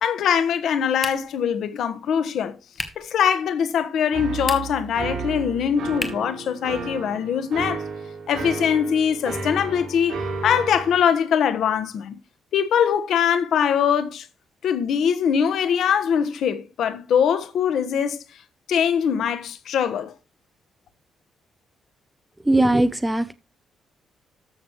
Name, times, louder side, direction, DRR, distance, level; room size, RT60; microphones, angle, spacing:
voice 1, 0.0-2.6 3.0-7.8 8.3-12.2 12.5-14.3 14.6-18.2 18.7-20.1, left 8 dB, 70° left, 1.2 m, -22 dB
sound 1, 1.0-1.5 2.7-3.1 4.3-4.9 6.0-6.4, left 2 dB, 15° left, 1.7 m, -33 dB
sound 2, 4.1-11.0, right 4 dB, 65° right, 6.0 m, -33 dB
voice 2, 22.5-23.3, right 1 dB, 10° right, 0.6 m, -19 dB
13.5 x 7.2 x 3.1 m
cardioid pair, 130°, 0 cm